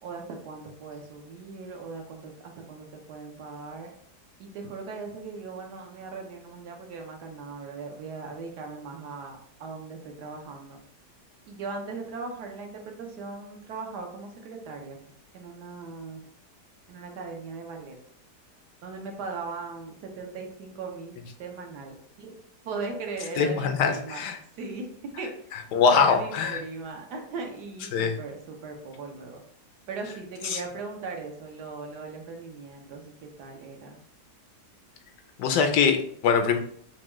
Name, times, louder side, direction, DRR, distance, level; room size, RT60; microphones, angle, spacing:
voice 1, 0.0-3.9 4.4-10.8 11.5-15.0 15.3-16.2 16.9-18.0 18.8-22.3 22.6-29.4 29.9-34.0, right 4 dB, 75° right, 2 dB, 1.3 m, -39 dB
voice 2, 23.4-24.4 25.7-26.6 27.9-28.1 30.5-30.6 35.4-36.6, left 6 dB, 80° left, 5 dB, 1.2 m, -23 dB
4.6 x 2.2 x 3.0 m, 0.62 s
omnidirectional pair, 1.8 m